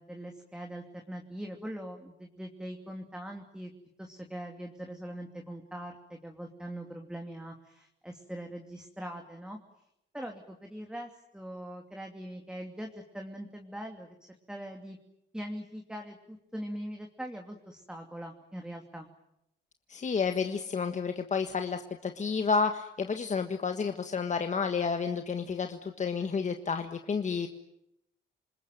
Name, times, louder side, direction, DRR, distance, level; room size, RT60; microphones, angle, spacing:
voice 1, 0.0-3.7 4.0-9.6 10.1-14.2 14.5-15.0 15.3-19.1, equal, 5° right, 2 dB, 2.8 m, -42 dB
voice 2, 19.9-27.5, left 5 dB, 35° left, 6 dB, 1.6 m, -30 dB
28.0 x 20.5 x 9.2 m, 0.82 s
cardioid pair, 90°, 20 cm